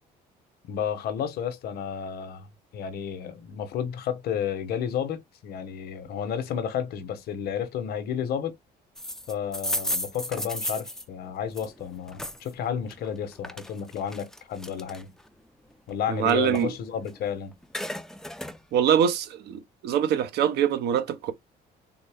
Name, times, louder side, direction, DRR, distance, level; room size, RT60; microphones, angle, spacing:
voice 1, 0.7-2.5 2.7-8.6 9.3-15.2 15.9-17.5, left 8 dB, 70° left, 0.9 m, -31 dB
sound 1, 9.0-12.5 12.9-15.3 15.7-17.2 17.5-18.6, left 1 dB, 5° left, 0.4 m, -34 dB
voice 2, 16.1-16.7 18.7-21.3, right 9 dB, 75° right, 0.8 m, -24 dB
3.9 x 2.1 x 3.4 m
cardioid pair, 110°, 17 cm